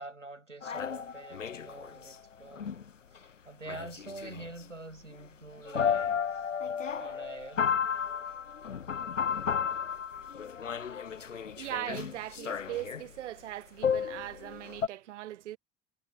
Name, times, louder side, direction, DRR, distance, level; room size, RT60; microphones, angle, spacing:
voice 1, 0.0-6.5 6.9-7.6, right 2 dB, 90° right, 7.4 m, -46 dB
sound 1, 0.6-2.1 2.5-2.9 3.2-3.3 3.7-4.6 5.2-5.3 5.7-13.1 13.8-14.9, left 7 dB, 85° left, 0.9 m, -33 dB
voice 2, 11.3-15.6, right 14 dB, 70° right, 1.6 m, -40 dB
figure-of-eight pair, 60°, 36 cm